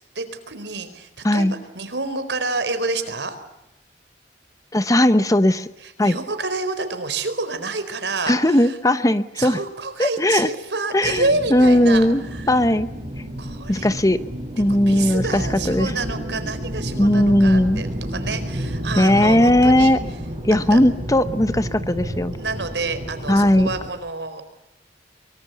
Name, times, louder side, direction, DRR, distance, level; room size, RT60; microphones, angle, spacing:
voice 1, 0.1-3.4 5.8-8.8 9.4-12.1 12.3-12.5 13.4-13.9 14.7-20.0 20.7-20.8 22.3-24.4, right 3 dB, 75° right, 9 dB, 4.5 m, -28 dB
voice 2, 4.7-5.7 6.0-6.2 8.3-9.6 10.0-10.5 10.9-11.2 11.5-12.2 12.5-12.9 13.2-13.3 13.7-14.2 14.5-15.9 17.0-17.8 19.0-20.0 20.4-22.3 23.3-23.7, left 1 dB, 20° left, 12 dB, 1.0 m, -17 dB
sound 1, 11.0-23.9, equal, 30° right, 4.9 m, -30 dB
24.0 x 24.0 x 8.3 m, 0.88 s
head